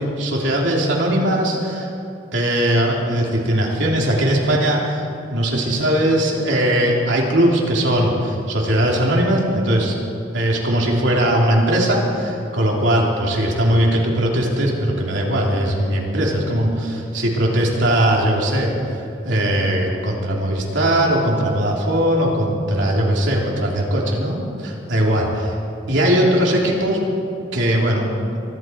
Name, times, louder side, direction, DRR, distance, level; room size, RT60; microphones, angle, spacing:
voice 1, 0.0-1.9 2.3-5.0 5.3-9.9 10.3-18.7 19.2-25.5 25.9-27.0 27.5-28.1, right 1 dB, 80° right, -2 dB, 3.1 m, -19 dB
24.0 x 12.0 x 4.6 m, 2.7 s
head